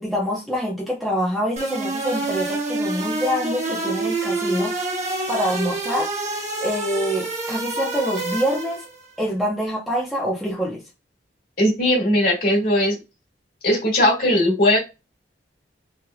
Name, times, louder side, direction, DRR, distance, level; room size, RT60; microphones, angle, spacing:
voice 1, 0.0-4.7 5.3-8.8 9.2-10.8, equal, ahead, 0.8 m, -25 dB
sound 1, 1.6-9.0, right 2 dB, 40° right, 1.0 m, -27 dB
voice 2, 11.6-13.0 13.6-14.8, left 1 dB, 55° left, 1.9 m, -18 dB
3.5 x 3.1 x 2.3 m
head